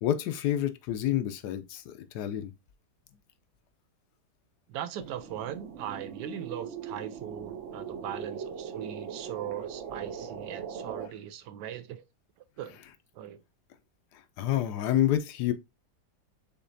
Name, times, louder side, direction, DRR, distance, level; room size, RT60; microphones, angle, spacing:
voice 1, 0.0-2.5 14.4-15.5, left 12 dB, 75° left, 1.1 m, -28 dB
voice 2, 4.7-12.0 12.6-12.8 13.1-13.4, right 10 dB, 80° right, 1.2 m, -39 dB
sound 1, 5.0-11.1, right 7 dB, 60° right, 0.8 m, -40 dB
6.5 x 2.9 x 2.6 m
omnidirectional pair, 1.9 m